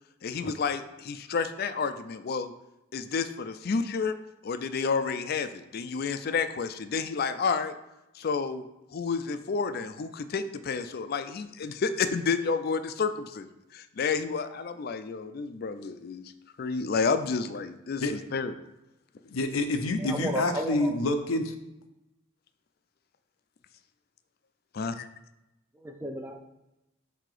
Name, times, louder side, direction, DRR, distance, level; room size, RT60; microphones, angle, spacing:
voice 1, 0.2-2.5 2.9-4.2 4.4-7.7 8.1-8.6 8.9-16.2 16.6-18.5 24.7-25.1, left 5 dB, 50° left, 11 dB, 0.4 m, -30 dB
voice 2, 19.2-21.5, left 2 dB, 90° left, 7 dB, 0.6 m, -27 dB
voice 3, 20.0-20.9 25.8-26.4, right 1 dB, 10° right, 5 dB, 0.4 m, -33 dB
7.6 x 2.8 x 4.9 m, 0.94 s
head